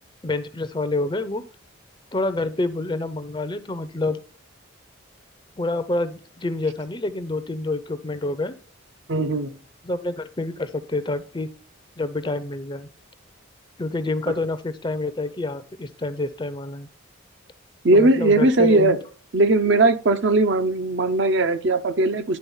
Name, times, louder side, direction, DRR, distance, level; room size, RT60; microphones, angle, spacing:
voice 1, 0.2-1.4 2.1-4.2 5.6-8.5 9.8-11.5 12.0-12.9 13.8-16.9 17.9-19.0, left 2 dB, 20° left, 12 dB, 0.5 m, -27 dB
voice 2, 9.1-9.5 17.8-19.0 19.3-22.4, right 2 dB, 55° right, 10 dB, 0.6 m, -19 dB
10.5 x 3.9 x 5.5 m, 0.41 s
head